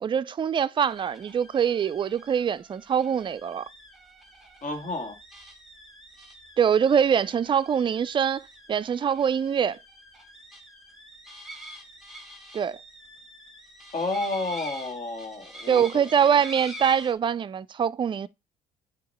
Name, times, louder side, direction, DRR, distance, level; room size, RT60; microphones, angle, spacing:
voice 1, 0.0-3.6 6.6-9.8 12.5-12.8 15.7-18.3, right 8 dB, 30° right, 0.4 m, -24 dB
sound 1, 0.8-17.1, equal, ahead, 1.6 m, -46 dB
voice 2, 4.6-5.2 13.9-16.4, left 2 dB, 50° left, 2.0 m, -31 dB
8.4 x 2.9 x 4.2 m
cardioid pair, 110°, 17 cm